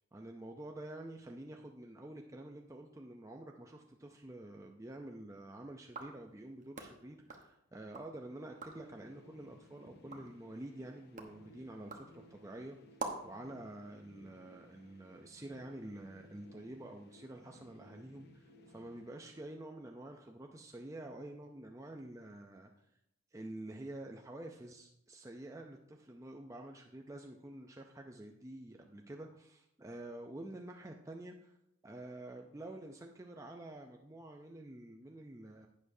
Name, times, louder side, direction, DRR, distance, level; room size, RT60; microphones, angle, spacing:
voice 1, 0.0-12.8 13.2-22.9 23.3-31.6 31.8-35.7, right 1 dB, 15° right, 2 dB, 0.5 m, -48 dB
sound 1, 5.8-8.1 8.5-8.9 9.4-13.4, right 3 dB, 35° right, 1.0 m, -48 dB
sound 2, 8.0-19.9, left 1 dB, 50° left, 0.7 m, -61 dB
11.0 x 8.6 x 2.7 m, 0.83 s
head